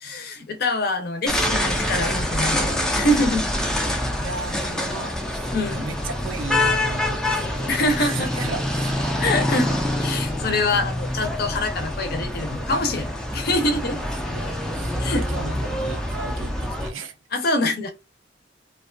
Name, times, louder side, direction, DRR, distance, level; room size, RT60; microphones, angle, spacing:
voice 1, 0.0-3.5 5.5-5.8 7.7-8.5 9.2-14.0 15.0-15.3 17.3-17.9, left 2 dB, 55° left, 0.6 m, -25 dB
sound 1, 1.3-16.9, left 1 dB, 5° left, 0.4 m, -26 dB
voice 2, 4.2-7.7 8.0-9.1 13.4-15.0 15.3-17.2 17.8-17.9, right 4 dB, 85° right, 0.5 m, -36 dB
2.5 x 2.3 x 2.4 m
head